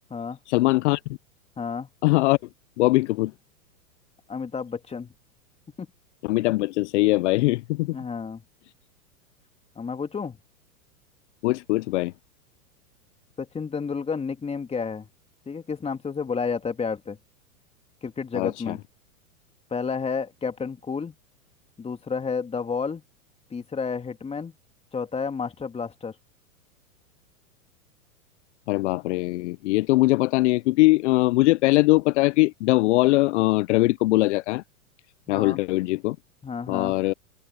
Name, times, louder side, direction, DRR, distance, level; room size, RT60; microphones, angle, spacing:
voice 1, 0.5-1.0 2.0-2.4 2.8-3.3 6.2-8.0 11.4-12.1 18.3-18.8 28.7-34.6 35.3-36.2 36.7-37.1, left 20 dB, 55° left, 0.7 m, -21 dB
voice 2, 1.6-1.9 4.3-5.1 5.8-5.9 7.9-8.4 9.8-10.4 13.4-15.1 15.5-17.2 18.0-18.8 19.7-21.1 21.8-23.0 23.5-24.5 24.9-26.2 35.3-35.6 36.4-37.0, left 5 dB, 15° left, 2.5 m, -31 dB
hypercardioid pair, 110°, 44 cm